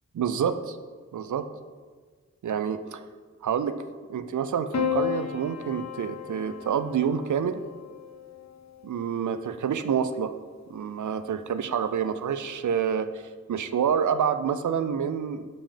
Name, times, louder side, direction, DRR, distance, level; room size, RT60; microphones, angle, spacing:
voice 1, 0.1-0.8 1.1-1.5 2.4-3.0 3.4-3.8 4.1-7.6 8.8-10.3 10.7-13.1 13.5-15.5, right 7 dB, 85° right, 11 dB, 0.5 m, -27 dB
Piano, 4.7-9.2 10.4-11.1, left 8 dB, 65° left, 0.7 m, -34 dB
5.4 x 5.3 x 5.1 m, 1.5 s
wide cardioid pair, 75°, 29 cm